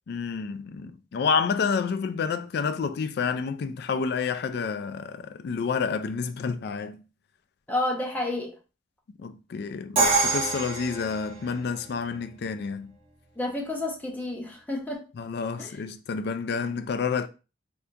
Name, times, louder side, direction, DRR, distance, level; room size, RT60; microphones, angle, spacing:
voice 1, 0.1-7.0 9.2-12.9 15.2-17.3, left 5 dB, 60° left, 0.3 m, -29 dB
voice 2, 7.7-8.5 13.4-15.0 15.6-15.7, left 2 dB, 10° left, 0.8 m, -30 dB
Crash cymbal, 10.0-11.9, right 4 dB, 35° right, 1.1 m, -26 dB
3.3 x 2.8 x 2.4 m
head